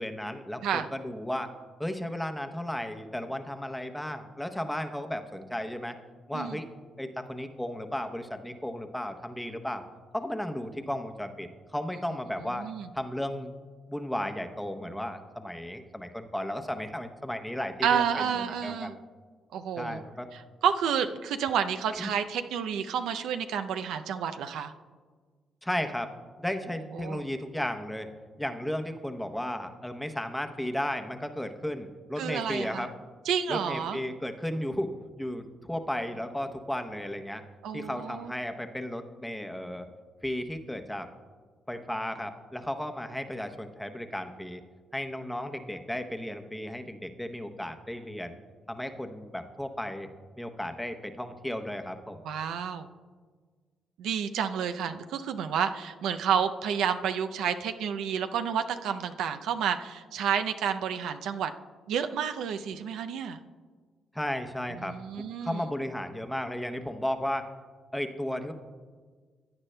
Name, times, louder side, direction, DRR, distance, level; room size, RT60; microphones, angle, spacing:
voice 1, 0.0-1.5 1.8-6.0 6.3-6.7 7.0-9.8 10.1-12.7 12.9-13.5 13.9-19.0 19.8-20.3 22.0-22.1 25.6-26.1 26.4-28.1 28.4-32.9 33.5-34.9 35.2-37.4 37.7-39.9 40.2-41.1 41.7-44.6 44.9-48.4 48.7-50.1 50.4-52.2 64.1-67.5 67.9-68.5, left 1 dB, 5° left, 7 dB, 0.8 m, -34 dB
voice 2, 12.6-12.9 17.8-18.9 19.5-20.0 20.6-24.7 27.0-27.2 32.2-32.9 33.3-34.0 37.6-38.3 52.2-52.9 54.0-61.5 61.9-63.4 64.7-65.6, right 8 dB, 85° right, 8 dB, 0.4 m, -30 dB
16.5 x 9.5 x 2.2 m, 1.5 s
cardioid pair, 90°, 0 cm